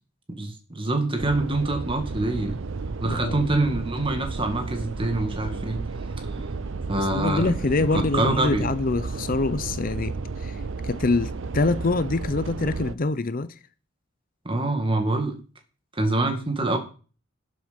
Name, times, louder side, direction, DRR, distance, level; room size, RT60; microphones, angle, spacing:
voice 1, 0.4-2.6 3.0-5.8 6.9-7.5 7.9-8.7 14.5-15.4 16.0-16.8, right 2 dB, 25° right, 2.0 m, -25 dB
sound 1, 1.2-12.9, right 4 dB, 70° right, 0.6 m, -33 dB
voice 2, 3.0-3.5 7.0-13.5, left 3 dB, 45° left, 0.6 m, -25 dB
12.0 x 7.7 x 5.2 m
head